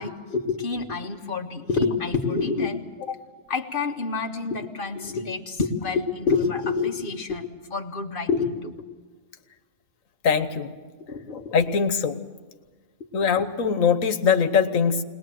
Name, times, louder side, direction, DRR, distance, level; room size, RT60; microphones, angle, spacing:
voice 1, 0.0-3.2 3.5-8.7 11.1-11.3 13.0-13.1, left 4 dB, 45° left, 3 dB, 1.6 m, -27 dB
voice 2, 10.2-10.7 11.3-12.2 13.1-15.0, left 6 dB, 80° left, 10 dB, 1.5 m, -22 dB
21.0 x 20.5 x 7.7 m, 1.4 s
omnidirectional pair, 1.3 m